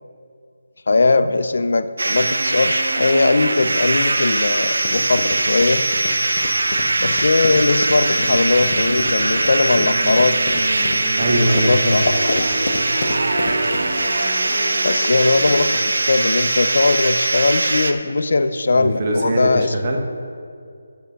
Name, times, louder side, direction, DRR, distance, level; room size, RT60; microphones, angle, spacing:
voice 1, 0.9-5.8 7.0-10.4 11.3-12.5 14.8-19.7, left 3 dB, 60° left, 12 dB, 0.6 m, -19 dB
sound 1, 2.0-17.9, right 2 dB, 75° right, 0.9 m, -21 dB
sound 2, 4.3-14.1, left 2 dB, 40° left, 0.9 m, -31 dB
Acoustic guitar, 7.5-15.5, right 1 dB, 5° right, 1.2 m, -31 dB
voice 2, 11.2-12.0 18.7-20.0, right 1 dB, 30° right, 0 dB, 1.1 m, -21 dB
8.2 x 6.8 x 6.3 m, 2.4 s
figure-of-eight pair, 170°, 0 cm